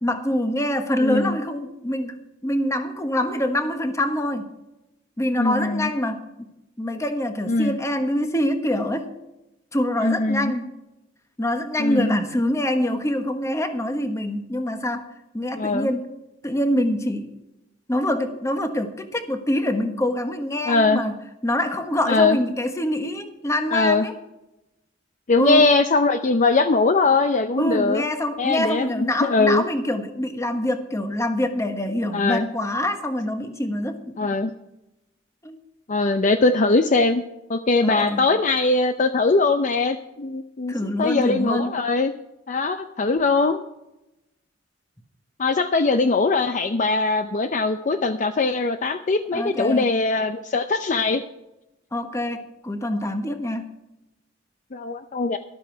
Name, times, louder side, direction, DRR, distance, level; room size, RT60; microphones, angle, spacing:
voice 1, 0.0-4.5 5.2-6.5 6.8-9.1 9.7-10.7 11.4-15.1 15.3-16.1 16.4-17.3 17.9-21.1 21.4-24.1 25.4-25.7 27.6-34.3 35.4-35.6 37.8-38.3 40.7-41.7 49.3-49.9 51.9-53.7, left 1 dB, 15° left, 7 dB, 1.2 m, -25 dB
voice 2, 1.0-1.4 5.4-5.9 7.5-7.8 10.0-10.5 11.8-12.2 15.6-15.9 20.7-21.0 22.1-22.4 23.7-24.1 25.3-28.0 28.4-29.6 32.1-32.5 34.2-34.5 35.9-37.2 37.5-42.1 42.5-43.6 45.4-51.2 54.7-55.4, left 3 dB, 40° left, 9 dB, 0.6 m, -21 dB
13.0 x 12.0 x 4.6 m, 0.92 s
head